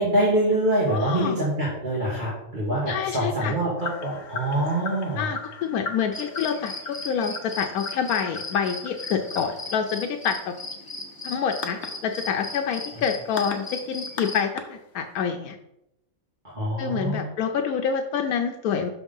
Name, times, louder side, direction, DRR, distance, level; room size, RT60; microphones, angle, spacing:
voice 1, 0.0-5.3 16.5-17.3, right 1 dB, 35° right, -7 dB, 1.7 m, -25 dB
voice 2, 0.9-1.3 2.9-3.5 5.2-10.5 11.2-15.6 16.8-18.9, left 7 dB, 85° left, 4 dB, 1.0 m, -27 dB
sound 1, 3.8-15.3, left 4 dB, 55° left, 1.0 m, -39 dB
sound 2, 6.1-14.5, left 2 dB, 20° left, 0.8 m, -37 dB
6.0 x 3.6 x 5.3 m, 0.84 s
omnidirectional pair, 1.5 m